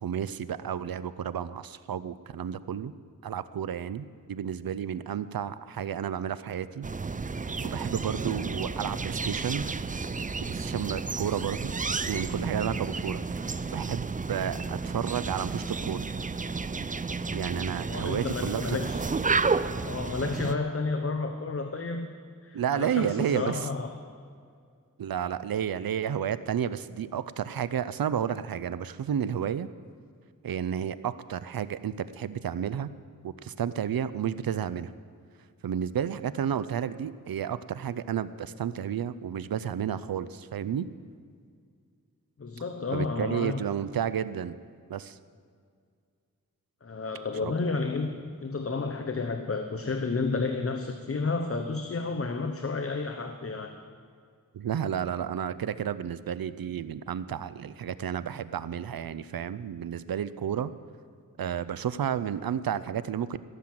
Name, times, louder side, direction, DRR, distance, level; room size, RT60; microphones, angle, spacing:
voice 1, 0.0-2.9 3.2-6.9 7.6-9.7 10.4-11.7 12.1-16.0 17.3-18.8 22.5-23.6 25.0-29.7 30.4-32.9 33.2-34.9 35.6-40.9 42.9-44.6 44.9-45.2 47.4-47.5 54.5-60.7 61.4-63.4, right 8 dB, 85° right, 14 dB, 0.6 m, -31 dB
sound 1, 6.8-20.6, right 4 dB, 25° right, 0.4 m, -32 dB
voice 2, 17.7-19.0 19.8-22.1 22.4-24.0 42.4-43.6 46.8-53.7, left 3 dB, 40° left, 6 dB, 0.9 m, -31 dB
16.0 x 7.5 x 7.8 m, 2.2 s
wide cardioid pair, 65°, 34 cm